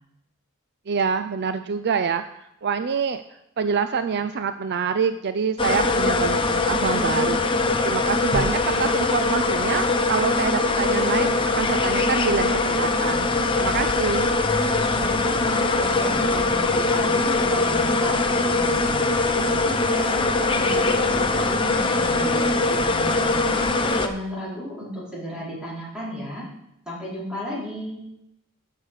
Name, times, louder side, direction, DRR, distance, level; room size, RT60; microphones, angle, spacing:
voice 1, 0.9-3.2 3.6-11.3 11.6-13.3 13.6-14.3, right 6 dB, 50° right, 10 dB, 0.5 m, -26 dB
sound 1, 5.6-24.1, left 3 dB, 25° left, 0.8 m, -22 dB
voice 2, 15.0-19.0 19.4-23.6 24.0-26.5 26.8-28.0, equal, 5° right, -8 dB, 4.9 m, -34 dB
12.0 x 6.5 x 6.5 m, 0.83 s
head